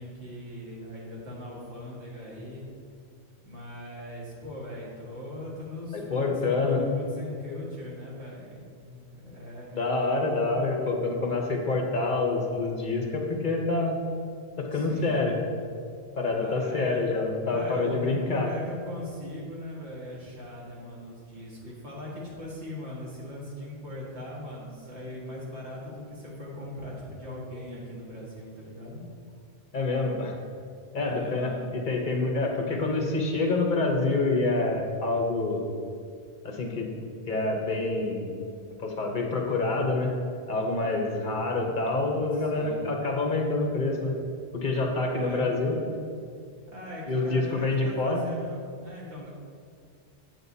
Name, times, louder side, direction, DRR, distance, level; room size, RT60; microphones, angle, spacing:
voice 1, 0.0-2.6 3.4-10.3 14.7-15.2 16.3-17.0 17.4-29.0 31.0-31.7 42.3-42.9 45.1-45.5 46.7-49.3, left 1 dB, 90° right, -5 dB, 2.0 m, -40 dB
voice 2, 6.1-6.8 9.7-14.0 14.6-15.4 16.2-18.5 29.7-30.3 30.9-35.7 36.4-36.9 37.3-38.3 38.8-40.1 40.5-44.1 44.5-45.8 47.1-48.2, left 3 dB, 50° left, 1 dB, 1.0 m, -27 dB
8.2 x 7.8 x 2.7 m, 2.3 s
omnidirectional pair, 1.1 m